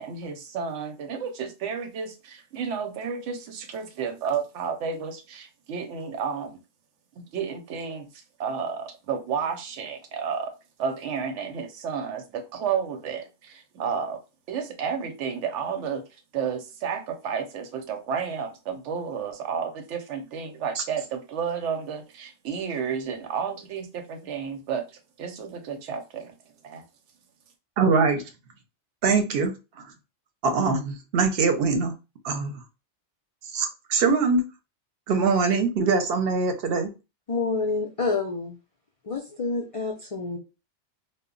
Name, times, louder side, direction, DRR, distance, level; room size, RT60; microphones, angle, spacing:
voice 1, 0.0-6.6 7.3-10.5 10.8-14.2 14.5-26.4 26.6-26.8, right 6 dB, 90° right, 7 dB, 0.9 m, -31 dB
voice 2, 27.8-28.2 29.0-29.9 30.4-31.9 32.2-32.6 33.5-34.4 35.1-36.9, right 4 dB, 65° right, 7 dB, 0.7 m, -23 dB
voice 3, 37.3-38.6 39.0-40.4, left 4 dB, 60° left, -1 dB, 0.3 m, -28 dB
2.1 x 2.0 x 3.6 m, 0.29 s
omnidirectional pair, 1.2 m